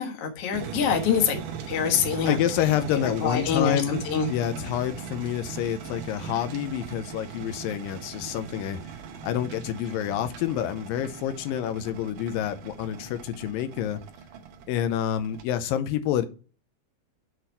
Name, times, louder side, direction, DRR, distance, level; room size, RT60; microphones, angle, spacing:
voice 1, 0.0-1.4 1.7-2.4 3.2-4.3, left 7 dB, 55° left, 2.0 m, -25 dB
sound 1, 0.5-15.4, right 8 dB, 70° right, 2.4 m, -39 dB
voice 2, 2.3-8.8 9.2-14.0 14.7-16.3, left 11 dB, 85° left, 2.4 m, -28 dB
7.8 x 4.2 x 4.4 m
omnidirectional pair, 4.0 m